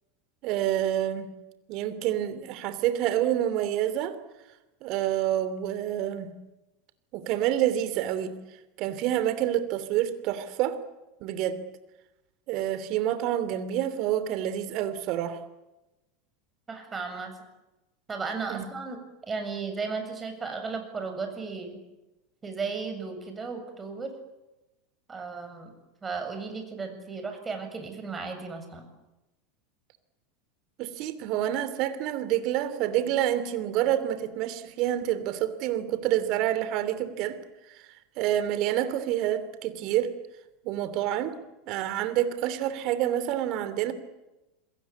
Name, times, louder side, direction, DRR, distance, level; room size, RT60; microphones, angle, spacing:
voice 1, 0.4-1.3 1.7-4.2 4.8-6.3 7.1-8.4 8.8-10.8 11.2-11.6 12.5-15.4 18.5-18.7 30.8-37.4 37.7-37.8 38.2-40.1 40.6-41.4 41.7-43.9, right 12 dB, 50° right, 12 dB, 3.0 m, -28 dB
voice 2, 16.7-17.3 18.1-19.0 19.3-21.8 22.4-24.1 25.1-25.7 26.0-28.9, right 4 dB, 20° right, 6 dB, 7.4 m, -35 dB
28.0 x 21.5 x 8.6 m, 1.0 s
figure-of-eight pair, 80°, 0 cm